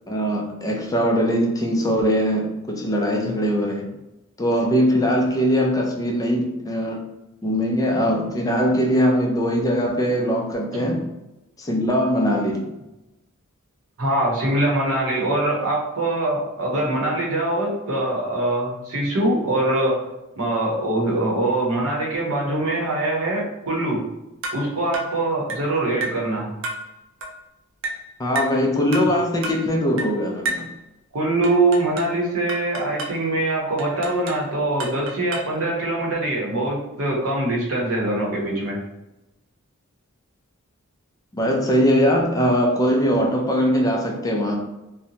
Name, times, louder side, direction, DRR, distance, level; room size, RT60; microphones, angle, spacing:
voice 1, 0.1-3.9 4.4-7.0 7.4-11.0 11.6-12.7 28.2-30.7 41.3-44.6, equal, 15° left, 0 dB, 0.4 m, -21 dB
voice 2, 14.0-20.0 20.4-24.0 24.5-26.5 31.1-38.8, right 2 dB, 75° right, -2 dB, 0.9 m, -23 dB
sound 1, 24.4-24.7 24.9-25.2 25.5-25.7 26.0-26.2 26.6-26.9 27.2-27.4 27.8-28.1 28.4-28.6 28.9-29.2 29.4-29.7 30.0-30.2 30.4-30.7 31.4-32.2 32.5-33.2 33.8-34.5 34.8-35.6, right 2 dB, 60° right, 0.5 m, -31 dB
2.7 x 2.1 x 2.8 m, 0.96 s
head